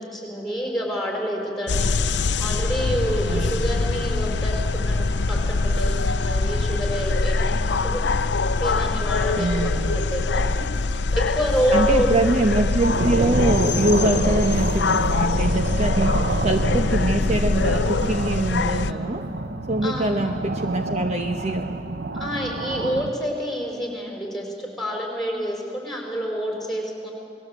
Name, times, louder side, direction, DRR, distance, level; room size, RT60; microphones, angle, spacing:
voice 1, 0.0-1.9 2.4-8.2 8.6-9.5 9.8-10.7 10.9-12.1 18.8-19.1 19.8-20.3 22.1-27.1, equal, ahead, 0 dB, 5.3 m, -28 dB
sound 1, 1.7-18.9, left 3 dB, 85° left, 0.7 m, -23 dB
voice 2, 3.2-3.5 3.9-4.0 9.3-10.0 11.7-19.2 19.7-21.8, right 1 dB, 40° right, 4 dB, 1.0 m, -24 dB
sound 2, 12.8-23.1, right 2 dB, 65° right, 1.0 m, -28 dB
28.0 x 20.5 x 8.2 m, 2.6 s
head